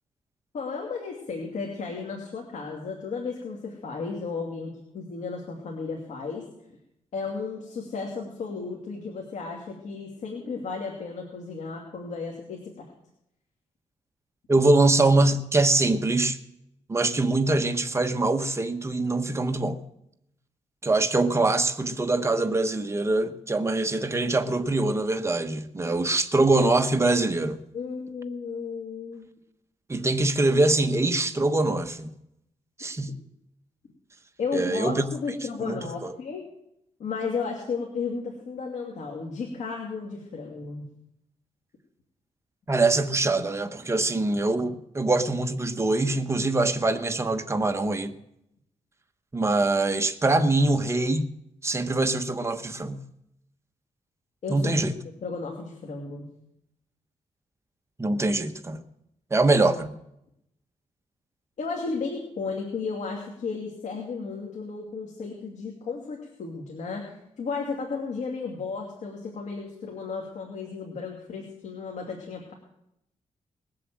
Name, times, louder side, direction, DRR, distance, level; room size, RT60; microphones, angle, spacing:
voice 1, 0.5-6.4 7.1-12.9 27.7-29.3 34.4-36.4 37.0-40.8 54.4-54.7 55.2-56.3 61.6-67.1 67.4-72.5, left 4 dB, 70° left, 2.6 m, -34 dB
voice 2, 14.5-16.4 16.9-19.8 20.8-27.6 29.9-32.1 32.8-33.2 34.5-35.1 35.6-36.1 42.7-48.1 49.3-51.3 51.6-53.0 54.5-54.9 58.0-58.8 59.3-59.9, right 2 dB, 20° right, 1.2 m, -23 dB
20.0 x 7.7 x 7.6 m
cardioid pair, 100°, 13 cm